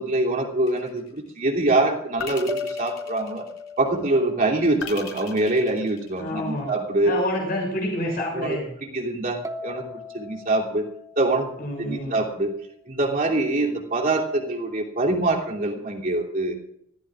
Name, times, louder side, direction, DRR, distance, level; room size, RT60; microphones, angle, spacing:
voice 1, 0.0-3.5 3.8-7.1 8.3-8.6 8.9-9.8 10.1-10.8 11.2-12.5 12.9-16.5, right 2 dB, 45° right, -2 dB, 3.0 m, -24 dB
sound 1, 0.7-1.3 2.2-3.9 4.8-6.6, left 6 dB, 85° left, 3.6 m, -39 dB
sound 2, 2.5-6.0 9.4-12.5, left 3 dB, 15° right, 1.1 m, -38 dB
voice 2, 6.2-6.7 7.0-8.7 11.6-12.1, left 1 dB, 50° left, -1 dB, 6.9 m, -28 dB
24.0 x 17.0 x 2.5 m, 0.71 s
head